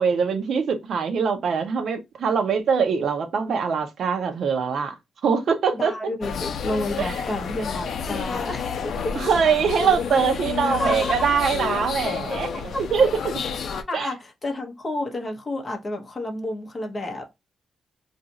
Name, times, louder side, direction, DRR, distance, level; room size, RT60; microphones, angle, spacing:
voice 1, 0.0-4.9 5.2-5.9 7.0-7.2 9.1-12.5 12.8-13.1 13.9-14.1, right 6 dB, 60° right, 0.7 m, -23 dB
voice 2, 5.7-9.1 10.8-11.1 13.9-17.3, left 1 dB, 20° left, 0.7 m, -30 dB
sound 1, 6.2-13.8, left 6 dB, 65° left, 0.5 m, -30 dB
2.6 x 2.4 x 3.9 m
wide cardioid pair, 165°, 0 cm